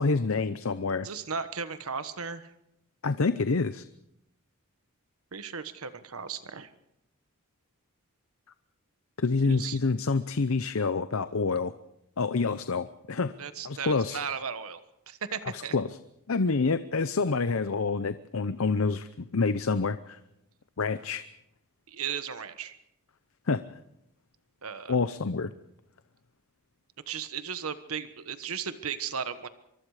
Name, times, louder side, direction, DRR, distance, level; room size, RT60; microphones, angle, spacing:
voice 1, 0.0-1.1 3.0-3.8 9.2-11.7 12.2-13.3 13.6-14.2 15.5-16.0 16.3-20.2 20.8-21.2 23.5-23.6 24.9-25.5, left 4 dB, 70° left, 13 dB, 0.7 m, -27 dB
voice 2, 1.0-2.5 5.3-6.7 9.4-9.8 13.4-14.8 15.1-15.8 21.9-22.7 24.6-25.0 27.1-29.5, right 6 dB, 75° right, 11 dB, 1.3 m, -36 dB
24.0 x 24.0 x 4.9 m, 0.81 s
head